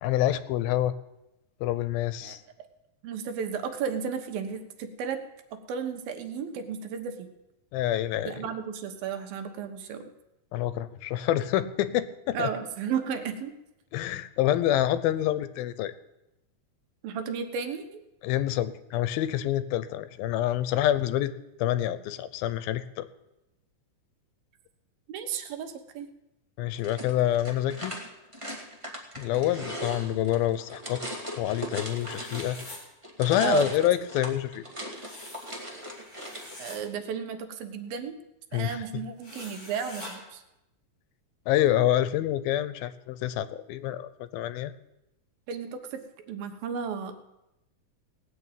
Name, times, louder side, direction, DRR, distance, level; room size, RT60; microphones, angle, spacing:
voice 1, 0.0-0.9 1.6-2.4 7.7-8.3 10.5-12.5 13.9-15.9 18.2-21.3 21.6-23.1 26.6-28.0 29.2-31.0 31.4-32.6 33.2-34.6 38.5-38.8 41.5-44.7, left 12 dB, 90° left, 15 dB, 2.6 m, -27 dB
voice 2, 3.0-5.2 5.7-7.3 8.3-10.1 12.3-13.5 17.0-18.0 25.1-26.1 33.4-33.9 36.6-38.2 38.5-40.4 45.5-46.0 46.3-47.2, right 7 dB, 80° right, 7 dB, 3.0 m, -33 dB
sound 1, 26.8-32.7 33.0-36.5, equal, 15° right, 1.2 m, -39 dB
sound 2, 31.7-32.8 34.9-36.8 39.2-40.1, left 2 dB, 25° left, 4.3 m, -45 dB
18.0 x 6.4 x 9.0 m, 0.92 s
omnidirectional pair, 4.1 m